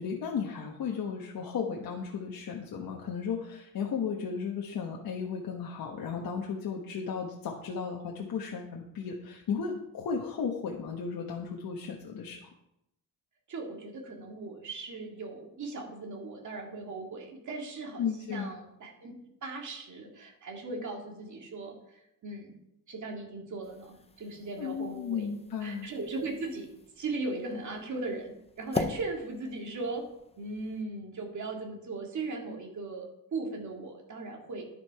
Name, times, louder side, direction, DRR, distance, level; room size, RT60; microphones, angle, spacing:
voice 1, 0.0-12.5 18.0-18.5 24.6-25.9, left 6 dB, 70° left, 0 dB, 1.2 m, -35 dB
voice 2, 13.5-19.1 19.4-22.5 22.9-25.3 25.6-26.7 27.0-30.1 30.4-34.7, right 3 dB, 50° right, 1 dB, 2.2 m, -38 dB
sound 1, 23.6-30.8, left 3 dB, 15° left, 0.6 m, -42 dB
11.0 x 7.4 x 4.7 m, 0.81 s
wide cardioid pair, 160°, 37 cm